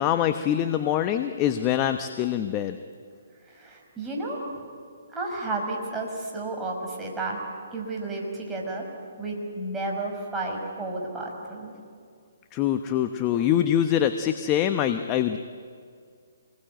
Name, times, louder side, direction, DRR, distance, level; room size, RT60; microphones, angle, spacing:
voice 1, 0.0-2.8 12.5-15.4, left 10 dB, 25° left, 8 dB, 1.0 m, -24 dB
voice 2, 3.4-4.4 5.1-7.4 7.7-8.9 9.2-11.7, right 2 dB, 10° right, -2 dB, 5.6 m, -32 dB
27.5 x 21.0 x 9.2 m, 2.1 s
hypercardioid pair, 145°, 0 cm